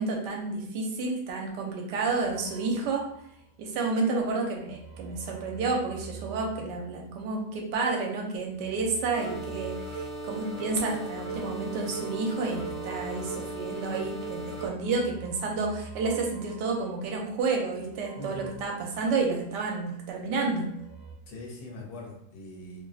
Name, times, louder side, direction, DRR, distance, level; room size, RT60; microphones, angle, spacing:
voice 1, 0.0-3.1 3.6-20.7, right 3 dB, 75° right, 0 dB, 1.2 m, -30 dB
sound 1, 2.1-3.7 4.0-7.6 8.4-19.8 20.1-21.1, right 4 dB, 50° right, 1.1 m, -48 dB
sound 2, 9.1-14.7, right 2 dB, 45° left, 1.6 m, -37 dB
voice 2, 18.2-18.5 21.3-22.8, left 1 dB, 80° left, -1 dB, 1.4 m, -41 dB
3.1 x 2.5 x 2.3 m, 0.75 s
omnidirectional pair, 1.9 m